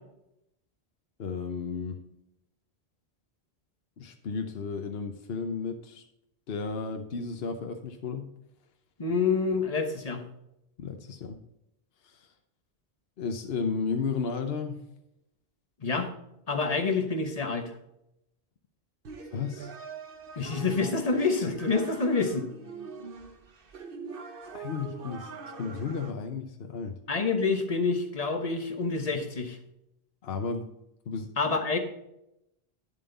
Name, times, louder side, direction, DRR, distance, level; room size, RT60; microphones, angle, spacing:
voice 1, 1.2-2.0 4.0-6.0 6.5-8.3 10.8-11.4 12.0-12.3 13.2-14.8 19.3-19.7 24.5-25.3 25.6-27.0 30.2-30.7 31.1-31.3, left 5 dB, 70° left, 5 dB, 1.1 m, -33 dB
voice 2, 9.0-10.2 15.8-16.1 16.5-17.7 20.4-22.5 27.1-29.6 31.4-31.8, left 4 dB, 40° left, 5 dB, 1.3 m, -27 dB
sound 1, 19.0-26.1, right 5 dB, 60° right, 1.3 m, -43 dB
10.0 x 7.4 x 4.0 m, 0.83 s
omnidirectional pair, 1.1 m